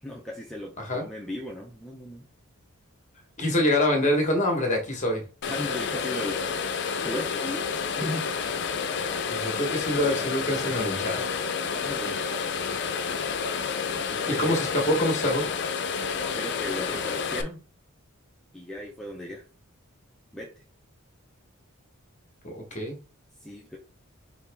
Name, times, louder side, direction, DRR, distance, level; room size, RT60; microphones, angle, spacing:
voice 1, 0.0-2.2 5.5-6.4 7.0-7.6 8.0-8.3 10.0-10.3 11.7-12.2 13.8-14.6 16.4-17.6 18.5-19.4 20.3-20.6 23.4-23.8, left 1 dB, ahead, -2 dB, 0.5 m, -36 dB
voice 2, 3.4-5.2 9.3-11.2 14.3-15.5 22.4-23.0, left 1 dB, 35° left, 3 dB, 1.2 m, -25 dB
sound 1, 5.4-17.4, left 6 dB, 55° left, 0.5 m, -30 dB
4.7 x 2.9 x 3.4 m, 0.35 s
head